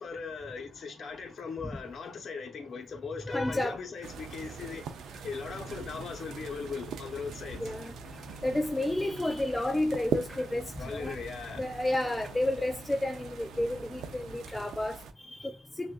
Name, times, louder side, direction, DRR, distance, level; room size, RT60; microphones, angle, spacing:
voice 1, 0.0-5.0 5.2-7.6 10.8-11.8, left 5 dB, 50° left, 0.9 m, -39 dB
voice 2, 3.3-3.8 7.6-7.9 8.4-11.2 11.6-15.9, left 1 dB, 10° left, 0.3 m, -31 dB
sound 1, 3.4-12.8, right 2 dB, 20° right, 1.5 m, -57 dB
sound 2, 4.0-15.1, right 7 dB, 75° right, 0.4 m, -41 dB
sound 3, 5.0-14.6, left 5 dB, 75° left, 0.6 m, -52 dB
6.1 x 2.5 x 2.3 m
cardioid pair, 90°, 0 cm